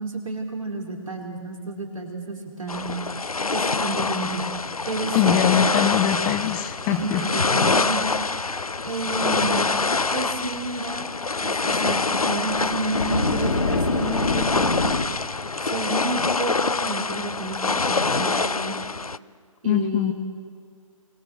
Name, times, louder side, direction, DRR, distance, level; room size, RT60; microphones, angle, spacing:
voice 1, 0.0-2.9 3.5-4.5 4.9-5.3 6.9-8.4 8.8-9.6 10.1-11.1 11.4-14.9 15.6-18.8 19.6-20.1, right 2 dB, 70° right, 0 dB, 4.9 m, -30 dB
sound 1, 2.7-19.2, left 3 dB, 85° left, 0.6 m, -25 dB
voice 2, 5.1-7.3 19.6-20.1, left 10 dB, 15° left, 10 dB, 0.6 m, -22 dB
sound 2, 12.5-15.1, left 3 dB, 70° left, 1.8 m, -25 dB
24.0 x 20.5 x 6.8 m, 2.1 s
figure-of-eight pair, 135°, 18 cm